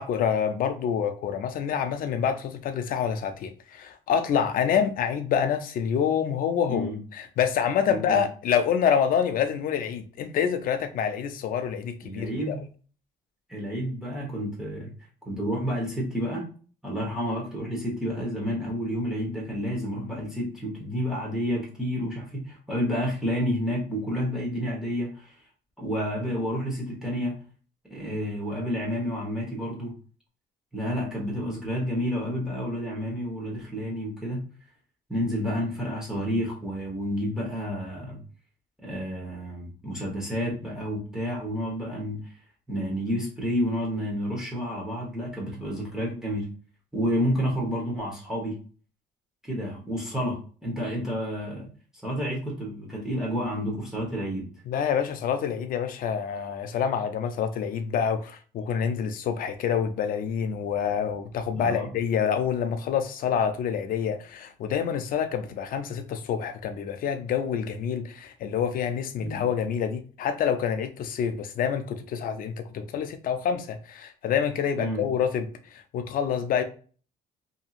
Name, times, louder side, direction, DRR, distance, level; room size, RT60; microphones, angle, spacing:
voice 1, 0.0-12.6 54.7-75.5 75.7-76.6, left 7 dB, 55° left, 0.4 m, -27 dB
voice 2, 7.9-8.2 12.0-12.6 13.5-14.9 15.2-16.4 16.8-25.3 25.8-27.3 27.9-29.9 30.7-34.4 35.1-38.2 38.8-42.2 42.7-46.5 46.9-48.6 49.5-51.7 52.0-54.5 61.5-61.9 69.2-69.4 74.8-75.0, equal, 5° right, 1.1 m, -30 dB
2.7 x 2.6 x 2.4 m
cardioid pair, 110°, 17 cm